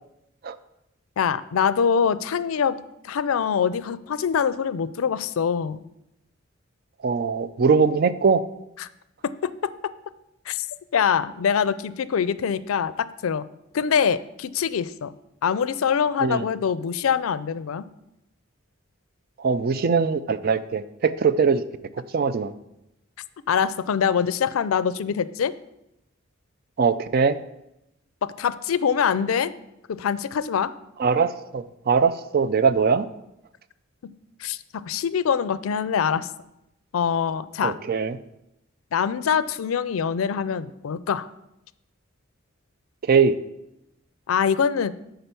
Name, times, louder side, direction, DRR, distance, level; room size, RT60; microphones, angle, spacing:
voice 1, 1.2-2.8 3.0-5.8 8.8-8.9 9.4-9.7 10.5-10.7 10.9-13.4 13.7-15.1 15.4-17.8 23.5-25.5 28.2-29.5 29.9-30.7 34.4-34.6 34.9-36.3 36.9-37.8 38.9-41.3 44.3-44.9, left 7 dB, 90° left, 16 dB, 0.4 m, -24 dB
voice 2, 7.0-8.4 16.2-16.4 19.4-21.6 22.1-22.5 26.8-27.4 31.0-33.1 37.6-38.2 43.0-43.4, right 5 dB, 50° right, 14 dB, 0.4 m, -21 dB
8.8 x 3.9 x 6.9 m, 0.85 s
head